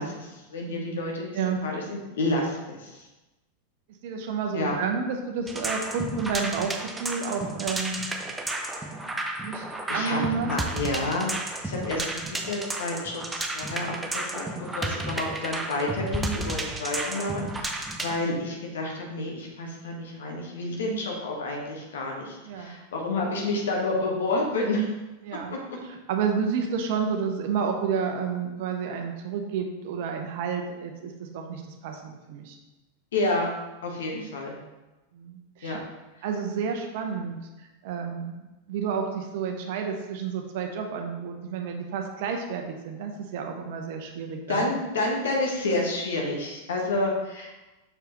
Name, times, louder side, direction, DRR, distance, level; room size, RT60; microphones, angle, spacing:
voice 1, 0.0-3.0 4.5-4.8 9.9-14.4 14.7-24.9 25.5-25.6 33.1-33.5 33.8-34.6 35.6-35.8 44.5-47.6, left 2 dB, 60° left, 0 dB, 1.4 m, -29 dB
voice 2, 0.7-1.0 1.3-1.6 4.0-8.0 9.4-9.6 9.9-10.5 18.0-18.2 22.4-22.8 25.2-25.5 25.8-32.6 35.1-35.8 36.2-44.7, right 6 dB, 50° right, 4 dB, 0.8 m, -30 dB
sound 1, 5.5-18.2, right 2 dB, 10° right, 0.7 m, -32 dB
6.5 x 4.7 x 3.1 m, 1.1 s
figure-of-eight pair, 90°, 0 cm